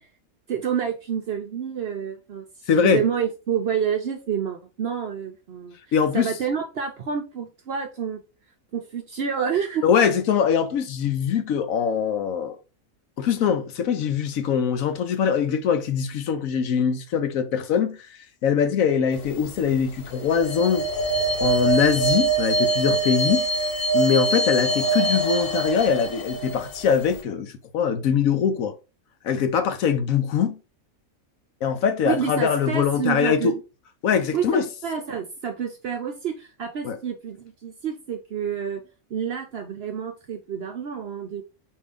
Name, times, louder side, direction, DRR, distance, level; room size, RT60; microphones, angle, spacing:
voice 1, 0.5-2.5 2.7-5.8 6.1-8.2 8.7-9.9 29.8-29.9 32.1-33.5 34.3-38.8 39.1-41.4, right 7 dB, 60° right, 0.7 m, -28 dB
voice 2, 2.7-3.0 5.9-6.3 9.8-12.6 13.2-18.0 18.4-20.9 21.4-23.5 23.9-28.7 29.2-30.6 31.6-33.5 34.0-34.6 36.8-37.0, left 7 dB, 75° left, 1.1 m, -22 dB
sound 1, 19.2-19.7 20.0-27.2, right 3 dB, 45° left, 1.0 m, -24 dB
4.6 x 2.7 x 3.5 m
omnidirectional pair, 1.5 m